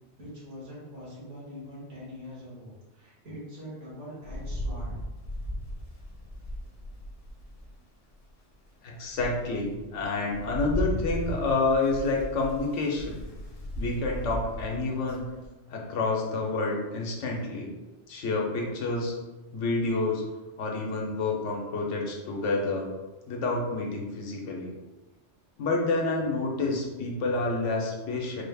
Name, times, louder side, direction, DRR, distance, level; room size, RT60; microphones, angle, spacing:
voice 1, 0.2-5.0, equal, 85° right, -7 dB, 2.0 m, -43 dB
Rain, 4.2-7.7 8.3-8.4 8.9-15.5, equal, 45° left, 0.4 m, -36 dB
voice 2, 8.8-13.2 13.8-15.3 15.7-17.7 18.1-19.1 19.5-20.2 20.6-22.9 23.3-24.7 25.6-28.4, left 3 dB, 90° left, 0 dB, 1.1 m, -28 dB
4.4 x 2.3 x 3.3 m, 1.1 s
omnidirectional pair, 1.2 m